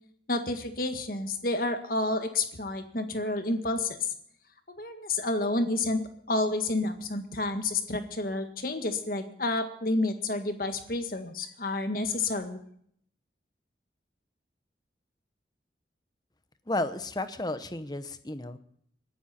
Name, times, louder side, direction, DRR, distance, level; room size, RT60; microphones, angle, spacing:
voice 1, 0.3-4.0 4.8-6.0 6.3-12.6, left 2 dB, 50° left, 7 dB, 1.8 m, -30 dB
voice 2, 16.7-18.6, left 2 dB, 20° left, 11 dB, 0.9 m, -32 dB
21.5 x 12.5 x 4.4 m, 0.65 s
head